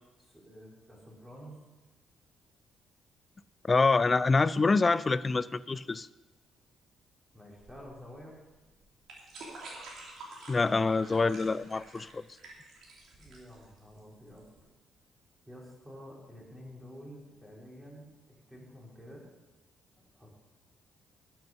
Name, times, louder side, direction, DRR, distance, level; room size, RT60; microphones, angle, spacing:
voice 1, 0.2-1.6 7.3-8.4 13.2-14.4 15.5-18.1 18.5-19.3 20.1-20.4, equal, 10° right, -3 dB, 4.0 m, -49 dB
voice 2, 3.7-6.1 10.5-12.2, left 3 dB, 30° left, 17 dB, 0.4 m, -26 dB
sound 1, 7.6-14.6, right 2 dB, 75° right, 3.4 m, -49 dB
12.0 x 7.8 x 5.5 m, 1.2 s
cardioid pair, 90°, 0 cm